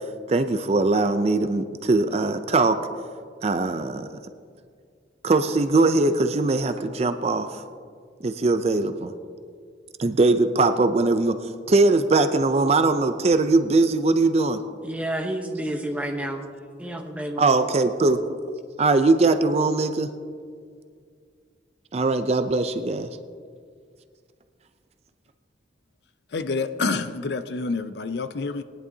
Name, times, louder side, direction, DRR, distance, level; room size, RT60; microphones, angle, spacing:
voice 1, 0.3-2.8 3.4-4.1 5.2-7.6 8.2-9.1 10.0-11.4 11.7-14.6 17.4-18.2 18.8-20.1 21.9-23.1, right 3 dB, 35° right, 0.4 m, -21 dB
voice 2, 14.8-16.5 16.8-17.6, right 1 dB, 10° right, 0.9 m, -30 dB
voice 3, 26.3-28.6, left 4 dB, 60° left, 0.5 m, -28 dB
19.0 x 10.5 x 2.7 m
head